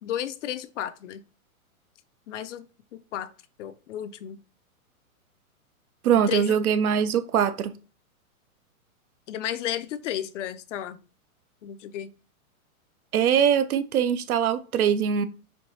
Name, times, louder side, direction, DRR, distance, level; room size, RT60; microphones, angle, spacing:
voice 1, 0.0-1.2 2.3-2.7 2.9-3.3 3.6-4.4 6.1-6.7 9.3-11.0 11.6-12.1, left 11 dB, 60° left, 0.5 m, -33 dB
voice 2, 6.0-7.7 13.1-15.3, right 8 dB, 85° right, 0.6 m, -22 dB
4.6 x 2.7 x 2.7 m
hypercardioid pair, 135°, 43 cm